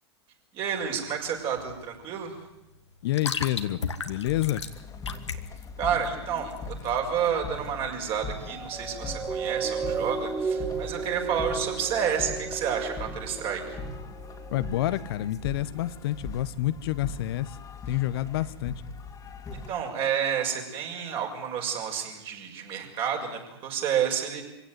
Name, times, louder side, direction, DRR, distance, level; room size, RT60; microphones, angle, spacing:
voice 1, 0.5-2.5 5.8-13.8 19.5-24.4, right 8 dB, 40° right, 2 dB, 6.5 m, -30 dB
sound 1, 0.6-7.3, left 5 dB, 90° left, 1.8 m, -37 dB
voice 2, 3.0-4.6 14.5-17.6 17.9-18.7, left 14 dB, 60° left, 14 dB, 1.1 m, -28 dB
sound 2, 4.3-19.7, left 3 dB, 20° left, 2.6 m, -41 dB
sound 3, 8.3-15.0 15.6-15.8, right 5 dB, 20° right, 1.9 m, -34 dB
24.5 x 16.5 x 9.6 m, 0.90 s
hypercardioid pair, 105°, 14 cm